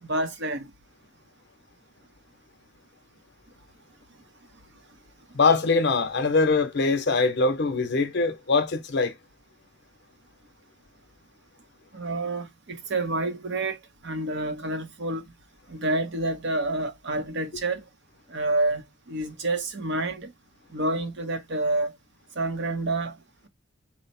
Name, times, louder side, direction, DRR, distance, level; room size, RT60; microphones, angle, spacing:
voice 1, 0.0-0.7 11.9-15.2 15.7-17.8 18.3-20.3 20.7-21.9 22.4-23.2, right 2 dB, 60° right, 0.8 m, -28 dB
voice 2, 5.3-9.1, left 4 dB, 55° left, 0.7 m, -22 dB
4.3 x 2.1 x 4.2 m
head